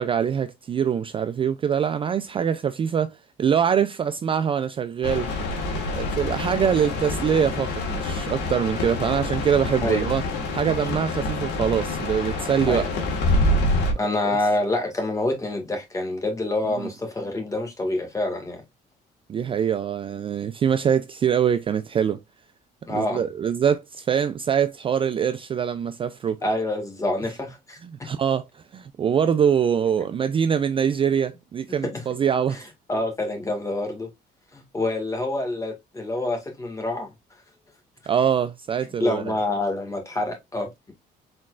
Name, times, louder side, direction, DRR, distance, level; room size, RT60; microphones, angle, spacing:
voice 1, 0.0-5.3 5.9-10.2 10.5-12.8 14.2-14.4 16.8-16.9 19.3-22.2 22.9-26.4 27.8-32.6 38.1-39.3, right 8 dB, 30° right, 0.3 m, -24 dB
sound 1, 5.0-13.9, left 2 dB, 80° left, 1.6 m, -26 dB
voice 2, 14.0-18.6 22.9-23.2 26.4-28.1 31.8-32.0 32.5-32.6 32.9-34.1 34.5-37.1 39.0-40.9, left 2 dB, 20° left, 1.8 m, -27 dB
4.3 x 4.2 x 2.4 m
cardioid pair, 110°, 17 cm